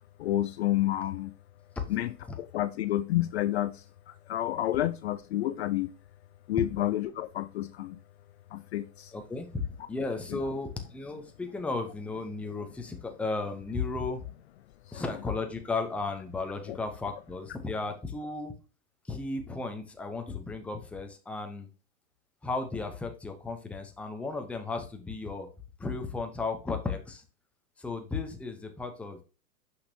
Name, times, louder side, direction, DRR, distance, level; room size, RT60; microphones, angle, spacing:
voice 1, 0.2-1.4 1.9-5.9 6.5-8.0 8.5-9.1 10.3-10.4 14.9-15.0 16.7-16.8, left 14 dB, 50° left, 0.4 m, -30 dB
voice 2, 9.1-14.2 14.9-18.5 19.1-21.7 22.4-25.5 25.8-27.2 27.8-29.2, left 3 dB, 5° left, 0.6 m, -34 dB
6.3 x 5.7 x 2.7 m
hypercardioid pair, 130°, 45 cm